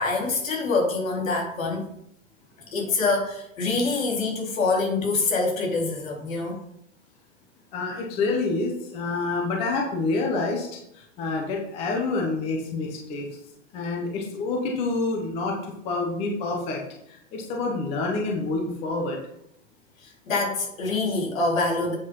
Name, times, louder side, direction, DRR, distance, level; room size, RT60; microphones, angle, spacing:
voice 1, 0.0-1.8 2.7-6.6 20.0-22.0, left 3 dB, 80° left, -1 dB, 4.0 m, -25 dB
voice 2, 7.7-10.7 10.9-13.3 13.7-16.8 17.1-19.2, left 3 dB, 15° left, 1 dB, 1.0 m, -27 dB
8.2 x 6.1 x 5.4 m, 0.75 s
supercardioid pair, 175°, 39 cm